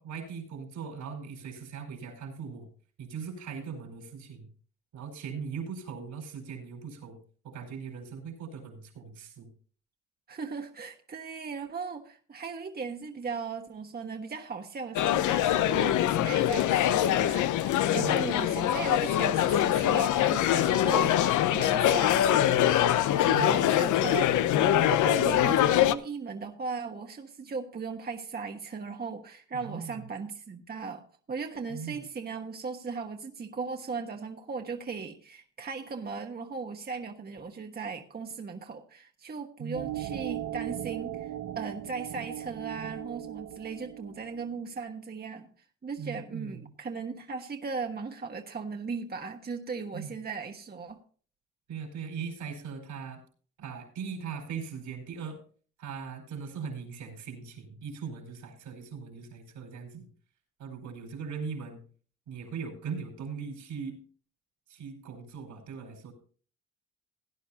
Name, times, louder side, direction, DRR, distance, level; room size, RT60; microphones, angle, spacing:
voice 1, 0.0-2.7 3.0-4.5 4.9-7.2 7.4-9.5 18.0-18.2 23.3-23.6 29.5-30.0 31.7-32.0 39.6-40.1 46.0-46.7 49.9-50.1 51.7-53.2 53.6-55.4 55.8-60.1 60.6-61.8 62.3-64.0 64.7-66.1, right 6 dB, 80° right, 4.8 m, -39 dB
voice 2, 10.3-24.3 24.5-31.0 31.3-45.5 45.8-51.0, right 5 dB, 30° right, 1.3 m, -37 dB
sound 1, 15.0-26.0, left 12 dB, 80° left, 0.7 m, -24 dB
sound 2, 39.7-44.5, right 12 dB, 60° right, 0.8 m, -38 dB
17.0 x 10.5 x 2.8 m
cardioid pair, 90°, 30 cm